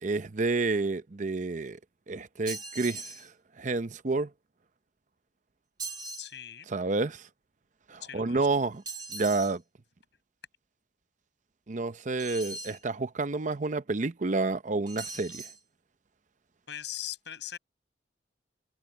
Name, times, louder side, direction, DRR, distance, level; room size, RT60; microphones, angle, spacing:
voice 1, 0.0-1.8 2.1-3.3 3.6-4.3 6.7-7.3 7.9-8.8 9.1-9.6 11.7-15.5, right 3 dB, 45° right, 0.7 m, -29 dB
sound 1, 2.5-3.3 5.8-6.3 8.9-9.6 12.2-12.8 14.9-15.6, right 3 dB, 25° right, 2.1 m, -40 dB
voice 2, 6.2-6.7 8.0-8.5 16.7-17.6, left 11 dB, 75° left, 5.7 m, -40 dB
head